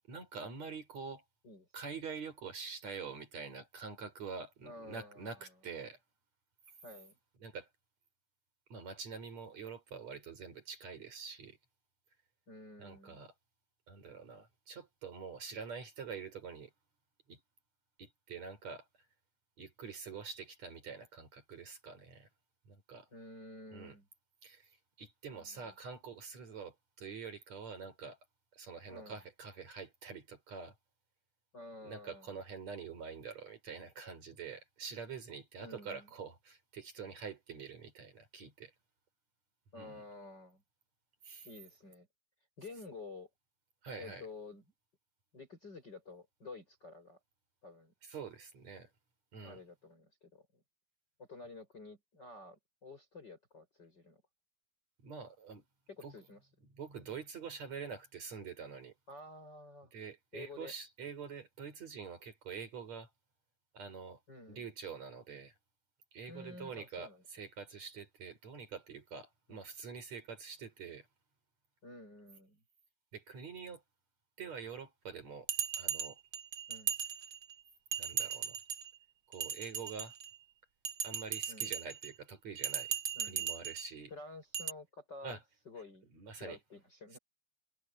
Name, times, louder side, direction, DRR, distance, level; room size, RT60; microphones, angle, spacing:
voice 1, 0.1-1.2 1.7-6.0 7.4-7.7 8.7-11.6 12.8-13.3 13.9-16.7 17.3-17.4 18.0-18.8 19.6-22.3 22.7-23.1 23.7-24.0 24.4-24.7 25.0-28.2 28.5-30.7 31.8-38.7 39.8-40.0 41.2-41.5 43.8-44.3 48.0-48.9 49.3-49.6 55.0-55.6 56.0-56.1 56.7-58.9 59.9-63.1 63.7-64.2 64.5-65.5 66.1-71.1 73.1-73.8 74.4-75.5 75.8-76.2 78.0-78.6 79.3-80.1 81.0-82.9 83.2-84.1 85.2-85.4 86.1-86.6 87.1-87.2, right 5 dB, 45° right, 5.7 m, -46 dB
voice 2, 4.6-5.5 6.8-7.2 12.5-13.3 23.1-24.1 25.3-25.7 28.9-29.2 31.5-32.3 35.6-36.1 39.7-40.6 41.4-42.1 42.6-43.3 44.0-44.6 45.3-47.2 47.6-47.9 49.4-50.6 51.2-54.2 55.9-56.4 59.1-59.9 60.3-60.7 64.3-64.7 66.3-67.2 69.5-69.6 71.8-72.6 76.7-76.9 81.5-81.8 83.2-83.5 84.1-85.4 85.7-86.1 86.4-87.2, left 3 dB, 25° left, 7.4 m, -51 dB
Bell, 75.5-77.5 77.9-78.9 79.3-80.3 80.8-82.1 82.6-83.9 84.5-84.7, right 8 dB, 70° right, 1.2 m, -37 dB
omnidirectional pair, 4.6 m